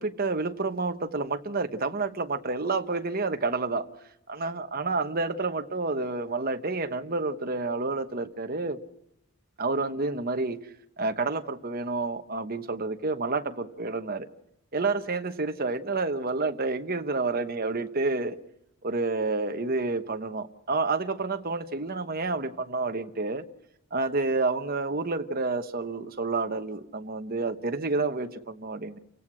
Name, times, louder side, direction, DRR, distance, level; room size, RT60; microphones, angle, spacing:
voice 1, 0.0-3.9 4.3-8.8 9.6-14.3 14.7-18.4 18.8-23.4 23.9-29.0, right 3 dB, 40° right, 1.1 m, -29 dB
29.5 x 16.5 x 6.2 m
head